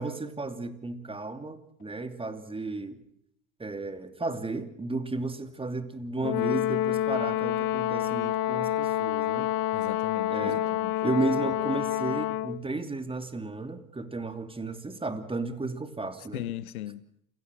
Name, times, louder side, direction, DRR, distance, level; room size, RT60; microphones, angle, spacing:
voice 1, 0.0-3.0 3.6-9.5 10.3-10.6 11.0-16.4, right 3 dB, 15° right, 2.8 m, -33 dB
Brass instrument, 6.2-12.6, left 12 dB, 55° left, 1.4 m, -28 dB
voice 2, 9.7-11.0 16.3-17.1, left 14 dB, 90° left, 0.9 m, -38 dB
28.5 x 17.5 x 6.3 m
hypercardioid pair, 80°, 42 cm